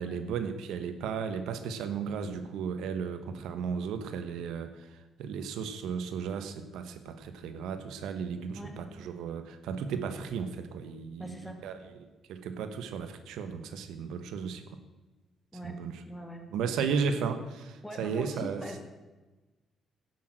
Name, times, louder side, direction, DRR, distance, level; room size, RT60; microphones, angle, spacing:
voice 1, 0.0-11.8 12.3-14.8 15.6-16.0 16.5-18.6, right 6 dB, 85° right, 9 dB, 1.0 m, -35 dB
voice 2, 11.2-11.6 15.5-15.8 16.1-16.4 16.7-17.0 17.8-18.8, equal, 10° left, 4 dB, 2.3 m, -42 dB
10.5 x 8.4 x 7.6 m, 1.2 s
cardioid pair, 90°, 0 cm